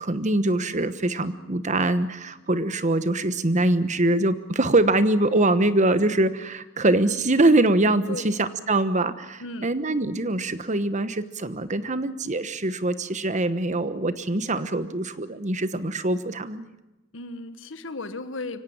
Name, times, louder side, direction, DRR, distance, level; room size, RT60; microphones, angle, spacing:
voice 1, 0.0-16.7, right 2 dB, 40° right, 13 dB, 1.2 m, -23 dB
voice 2, 8.1-8.4 9.4-9.7 17.1-18.6, left 2 dB, 75° left, 11 dB, 1.3 m, -35 dB
24.5 x 17.0 x 8.8 m, 1.0 s
head